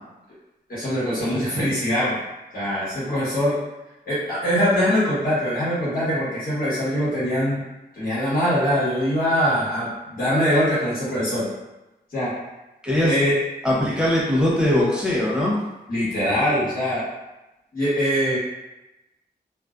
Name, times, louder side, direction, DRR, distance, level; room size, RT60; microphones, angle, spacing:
voice 1, 0.7-2.2 2.5-3.5 4.0-7.6 8.0-11.5 12.1-12.3 13.0-13.3 15.9-17.0 17.7-18.4, equal, 55° left, -11 dB, 1.2 m, -22 dB
voice 2, 12.8-13.1 13.6-15.6, left 1 dB, 5° right, -6 dB, 0.8 m, -20 dB
2.4 x 2.1 x 2.4 m, 0.98 s
cardioid pair, 60°, 18 cm